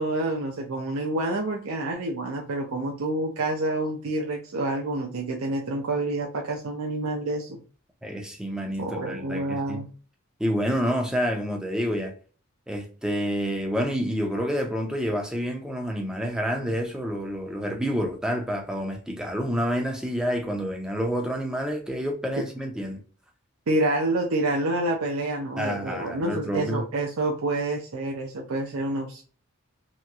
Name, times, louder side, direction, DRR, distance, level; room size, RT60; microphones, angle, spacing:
voice 1, 0.0-7.6 8.8-9.9 23.7-29.2, right 2 dB, 80° right, 0.5 m, -28 dB
voice 2, 8.0-9.8 10.4-12.1 12.7-23.0 25.6-26.9, equal, 5° right, 0.5 m, -28 dB
3.0 x 3.0 x 2.3 m
head